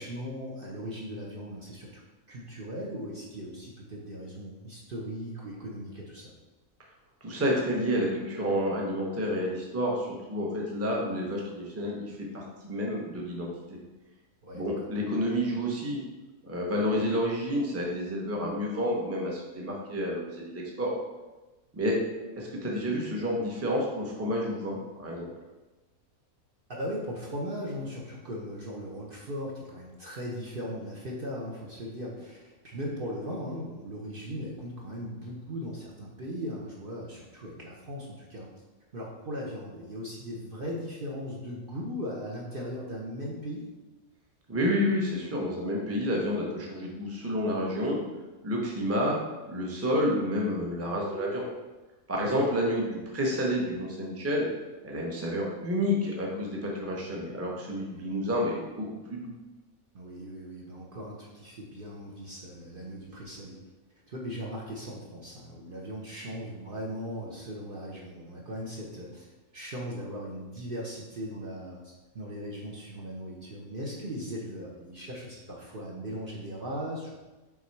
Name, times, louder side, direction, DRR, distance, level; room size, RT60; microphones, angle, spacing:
voice 1, 0.0-2.0 2.3-6.3 14.4-14.9 26.7-38.5 38.9-43.7 52.1-52.4 57.9-58.3 59.9-63.6 64.1-69.3 69.5-77.2, equal, 45° right, -3 dB, 0.9 m, -38 dB
voice 2, 7.2-13.8 14.5-16.0 16.4-20.9 21.7-21.9 22.4-25.3 44.5-48.0 48.4-49.2 49.5-51.5 52.1-54.5 54.8-59.3, equal, 15° right, -2 dB, 0.8 m, -29 dB
5.9 x 3.5 x 4.6 m, 1.2 s
omnidirectional pair, 1.4 m